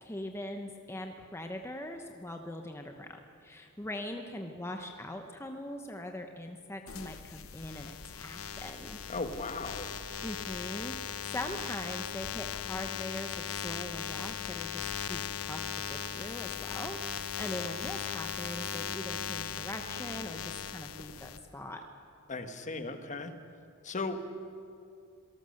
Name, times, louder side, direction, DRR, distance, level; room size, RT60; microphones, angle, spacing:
voice 1, 0.0-9.0 10.2-21.8, left 1 dB, 10° left, 4 dB, 1.0 m, -41 dB
sound 1, 6.9-21.4, left 7 dB, 70° left, 0.9 m, -38 dB
voice 2, 9.1-9.9 22.3-23.3 23.8-24.2, left 3 dB, 35° left, 7 dB, 1.4 m, -36 dB
26.0 x 18.5 x 6.6 m, 2.5 s
head